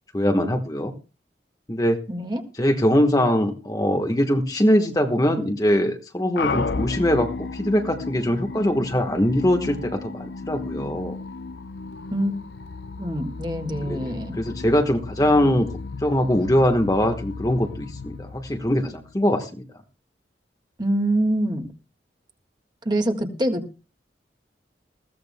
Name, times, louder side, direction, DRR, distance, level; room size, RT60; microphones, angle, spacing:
voice 1, 0.1-0.9 1.7-2.0 2.6-11.2 13.9-15.7 16.0-19.6, equal, 20° left, 5 dB, 1.2 m, -22 dB
voice 2, 2.1-2.4 12.1-12.3 13.0-14.4 20.8-21.7 22.9-23.8, right 1 dB, 25° right, 5 dB, 1.7 m, -25 dB
sound 1, 6.4-19.2, left 4 dB, 70° left, 0.6 m, -34 dB
21.0 x 15.5 x 2.2 m, 0.31 s
head